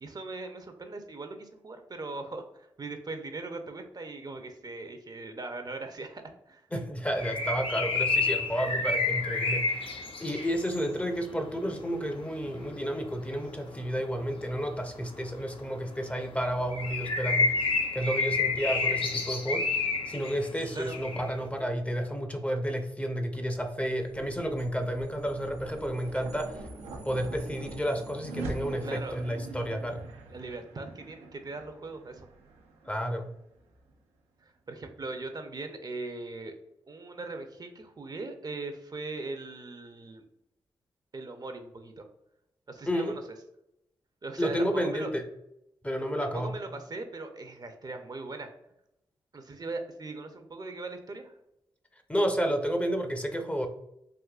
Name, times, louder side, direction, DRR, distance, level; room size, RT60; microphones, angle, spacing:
voice 1, 0.0-6.6 20.7-21.0 28.8-29.2 30.3-32.3 34.4-36.5 36.9-40.3 41.1-42.1 42.7-43.2 44.2-45.1 46.2-48.5 49.3-51.3, right 3 dB, 40° right, 6 dB, 0.5 m, -40 dB
voice 2, 6.7-26.6 27.0-30.0 32.9-33.3 42.9-43.2 44.4-45.2 45.8-46.6 52.1-53.7, equal, 10° left, 5 dB, 0.5 m, -31 dB
sound 1, 7.1-21.5, left 3 dB, 60° left, 0.7 m, -31 dB
sound 2, 23.4-33.9, right 2 dB, 90° right, 0.5 m, -44 dB
3.7 x 2.6 x 2.3 m, 0.80 s
supercardioid pair, 40°, 10 cm